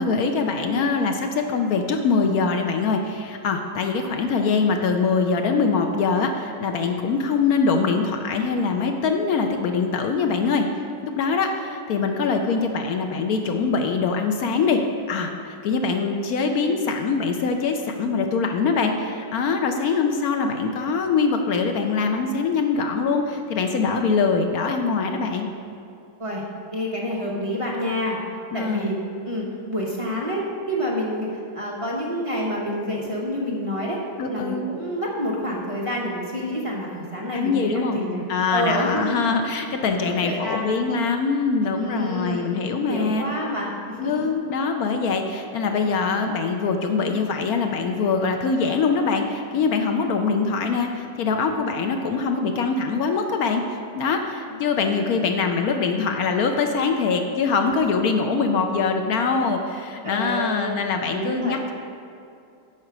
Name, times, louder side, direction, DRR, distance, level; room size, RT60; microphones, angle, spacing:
voice 1, 0.0-10.7 11.0-14.8 15.1-25.5 28.5-28.9 34.2-34.7 37.3-38.0 38.3-43.3 44.0-53.6 53.9-61.7, left 4 dB, 70° left, 5 dB, 1.0 m, -23 dB
voice 2, 26.7-28.2 28.5-31.3 31.5-34.0 34.3-38.2 38.5-39.2 40.0-40.8 41.7-44.3 54.5-54.7 55.0-55.2 60.0-61.5, equal, 30° right, -4 dB, 0.7 m, -28 dB
8.7 x 4.5 x 6.0 m, 2.5 s
omnidirectional pair, 1.9 m